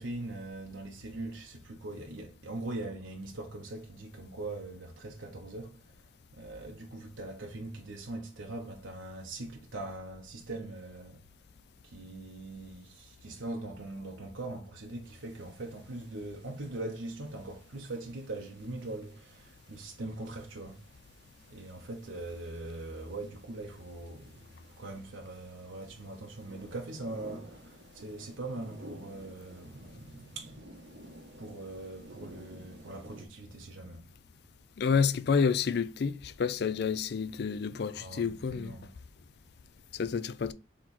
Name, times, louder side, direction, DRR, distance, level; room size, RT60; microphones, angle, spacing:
voice 1, 0.0-11.2 11.8-20.8 21.5-24.4 24.8-30.7 31.4-34.1 38.0-38.9, right 2 dB, 85° right, 0.8 m, -41 dB
sound 1, 15.0-33.3, right 1 dB, 70° right, 1.4 m, -54 dB
voice 2, 34.8-38.8 39.9-40.5, left 6 dB, 60° left, 0.4 m, -29 dB
4.2 x 3.0 x 4.0 m
head